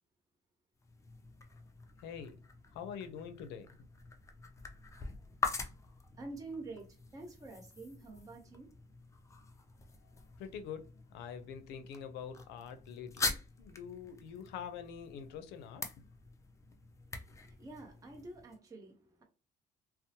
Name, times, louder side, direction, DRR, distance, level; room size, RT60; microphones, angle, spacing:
sound 1, 0.8-18.6, left 4 dB, 20° left, 0.4 m, -44 dB
voice 1, 2.0-2.4 2.7-3.7 10.2-16.1, left 7 dB, 90° left, 0.5 m, -45 dB
voice 2, 6.2-8.7 17.1-19.2, right 2 dB, 20° right, 0.7 m, -48 dB
2.7 x 2.0 x 2.7 m
cardioid pair, 110°, 17 cm